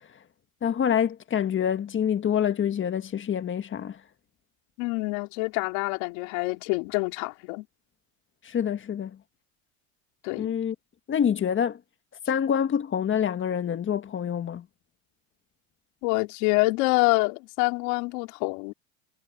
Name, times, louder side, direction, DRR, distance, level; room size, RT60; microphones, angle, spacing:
voice 1, 0.6-4.0 8.4-9.2 10.3-10.7 11.1-11.8 12.3-14.6, left 8 dB, 30° left, 1.5 m, -26 dB
voice 2, 4.8-7.7 10.2-10.6 16.0-18.7, left 27 dB, 70° left, 3.2 m, -26 dB
supercardioid pair, 105°, 39 cm